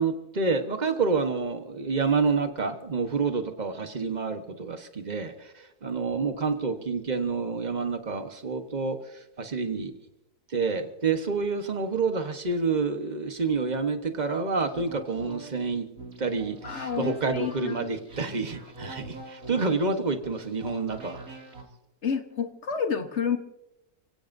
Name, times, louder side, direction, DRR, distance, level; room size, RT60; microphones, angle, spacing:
voice 1, 0.0-9.9 10.5-15.9 16.2-21.2, right 4 dB, 30° right, 7 dB, 1.2 m, -28 dB
sound 1, 14.6-21.6, right 2 dB, 65° right, 3.1 m, -44 dB
voice 2, 16.6-17.9 18.3-18.4 22.0-23.4, left 6 dB, 50° left, 7 dB, 1.4 m, -30 dB
30.0 x 16.5 x 2.7 m, 0.92 s
omnidirectional pair, 1.6 m